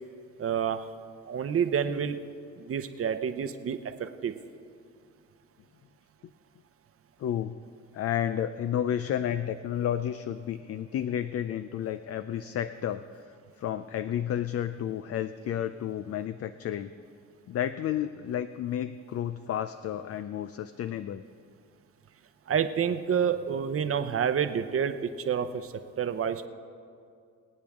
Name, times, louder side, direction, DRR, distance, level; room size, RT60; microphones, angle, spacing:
voice 1, 0.4-0.9 1.3-2.1 2.6-4.3 22.5-26.5, right 7 dB, 50° right, 9 dB, 0.8 m, -29 dB
voice 2, 7.2-7.6 7.9-13.2 13.6-16.9 17.5-21.2, left 10 dB, 55° left, 12 dB, 0.5 m, -31 dB
24.0 x 8.7 x 3.6 m, 2.4 s
cardioid pair, 90°, 30 cm